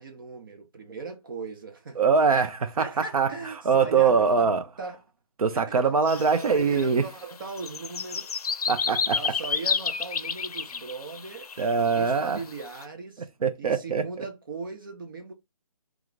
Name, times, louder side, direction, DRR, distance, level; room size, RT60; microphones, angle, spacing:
voice 1, 0.0-2.0 2.3-2.5 2.8-5.0 5.5-5.7 6.3-8.3 9.1-11.5 11.8-13.3 13.6-15.3, right 4 dB, 35° right, 0.6 m, -39 dB
voice 2, 2.0-3.3 3.7-4.6 5.4-7.1 8.7-9.3 11.6-12.4 13.4-14.2, right 5 dB, 70° right, 0.7 m, -23 dB
sound 1, 6.1-12.8, left 6 dB, 85° left, 0.5 m, -31 dB
3.2 x 2.3 x 3.8 m
hypercardioid pair, 165°, 19 cm